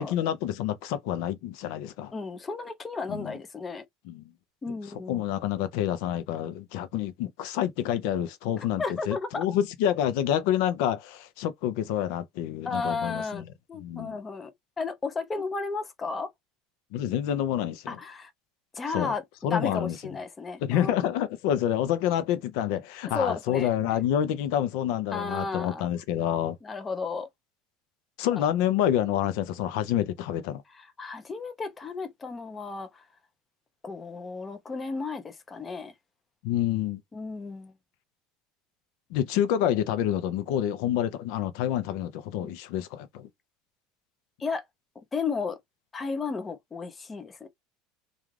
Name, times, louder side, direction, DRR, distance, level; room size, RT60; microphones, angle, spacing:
voice 1, 0.0-2.1 3.1-3.3 4.1-4.2 5.1-13.5 13.8-14.2 16.9-18.0 18.9-19.1 19.4-20.0 20.6-26.6 28.2-30.6 36.4-37.0 39.1-43.3, left 10 dB, 65° left, 0.5 m, -28 dB
voice 2, 2.1-3.8 4.6-5.2 8.8-9.4 12.6-14.5 14.8-16.3 17.9-18.3 18.7-19.2 19.5-21.1 23.1-23.7 25.1-25.9 26.6-27.3 28.4-28.5 30.7-33.0 33.8-35.9 37.1-37.7 42.4-42.6 44.4-44.6 45.1-45.6 45.9-47.5, left 4 dB, 15° left, 0.5 m, -33 dB
2.4 x 2.4 x 3.1 m
cardioid pair, 160°, 0 cm